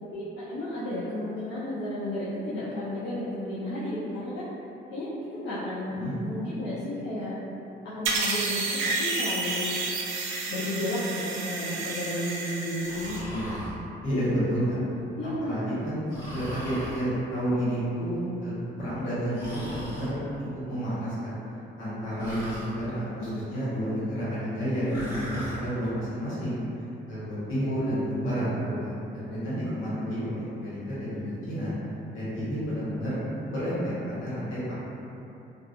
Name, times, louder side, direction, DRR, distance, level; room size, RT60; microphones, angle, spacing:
voice 1, 0.0-4.5 4.9-7.3 7.8-9.7 10.5-13.2 15.2-15.6, left 1 dB, 65° left, -11 dB, 0.6 m, -33 dB
sound 1, 8.0-13.2, right 3 dB, 90° right, 0.4 m, -30 dB
Breathing, 12.8-13.7 16.1-17.1 19.3-20.1 22.2-22.7 24.9-25.6, equal, 20° left, 1.2 m, -38 dB
voice 2, 14.0-14.8 15.4-16.0 16.3-18.5 18.8-21.3 21.8-26.6 27.1-31.7 32.1-33.2 33.5-34.7, equal, 80° left, -11 dB, 1.1 m, -30 dB
2.6 x 2.3 x 2.4 m, 2.9 s
cardioid pair, 90°, 20 cm